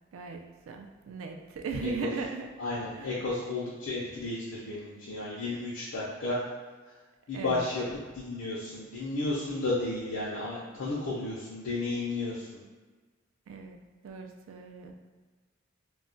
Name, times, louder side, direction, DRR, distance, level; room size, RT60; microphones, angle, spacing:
voice 1, 0.1-2.5 2.9-3.2 7.3-7.7 13.5-14.9, right 4 dB, 80° right, 4 dB, 0.3 m, -38 dB
voice 2, 2.6-6.4 7.3-7.8 8.1-12.6, left 2 dB, 90° left, -7 dB, 0.5 m, -33 dB
2.3 x 2.1 x 3.8 m, 1.4 s
head